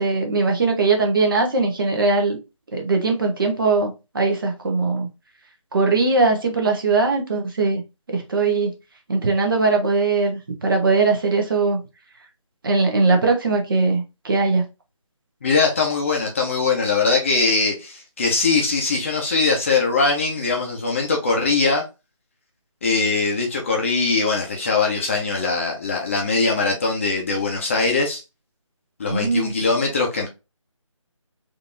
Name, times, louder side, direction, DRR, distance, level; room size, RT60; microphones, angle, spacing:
voice 1, 0.0-2.4 2.7-5.1 5.7-7.8 8.1-8.7 9.1-11.8 12.6-14.6 29.1-29.5, right 3 dB, 40° right, 1.0 m, -20 dB
voice 2, 15.4-21.8 22.8-28.2 29.0-30.3, left 4 dB, 25° left, 0.7 m, -21 dB
4.1 x 2.7 x 2.6 m
figure-of-eight pair, 155°, 17 cm